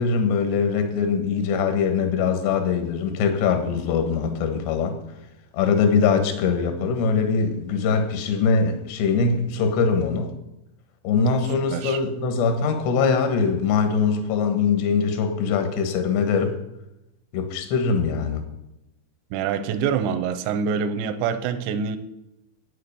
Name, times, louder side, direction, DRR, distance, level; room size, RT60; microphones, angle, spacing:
voice 1, 0.0-4.9 5.5-10.3 11.0-16.6 17.3-18.4, left 5 dB, 70° left, 7 dB, 3.2 m, -22 dB
voice 2, 19.3-22.0, right 7 dB, 85° right, 11 dB, 2.6 m, -25 dB
9.5 x 7.6 x 6.7 m, 0.89 s
omnidirectional pair, 5.8 m